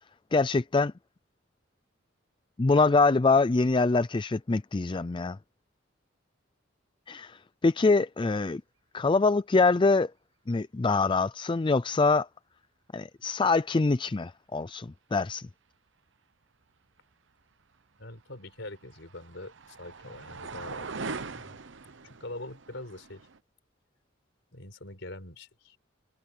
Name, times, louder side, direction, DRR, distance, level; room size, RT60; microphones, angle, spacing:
voice 1, 0.3-0.9 2.6-5.4 7.1-8.6 8.9-10.1 10.5-12.3 12.9-15.5, left 3 dB, 25° left, 0.4 m, -24 dB
voice 2, 18.0-21.6 22.0-23.3 24.5-25.8, left 2 dB, 65° left, 5.1 m, -44 dB
sound 1, 18.1-23.4, right 4 dB, 65° right, 1.0 m, -41 dB
head